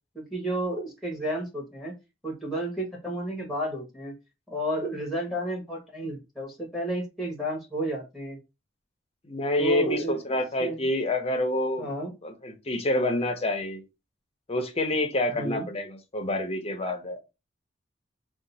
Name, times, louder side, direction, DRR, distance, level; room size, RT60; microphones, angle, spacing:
voice 1, 0.1-1.9 2.2-4.1 4.5-8.4 9.6-10.2 10.6-10.8 11.8-12.1 15.3-15.6, right 1 dB, ahead, 1.2 m, -31 dB
voice 2, 9.2-11.9 12.2-13.8 14.5-17.2, left 1 dB, 35° left, 0.7 m, -27 dB
2.8 x 2.4 x 3.9 m
head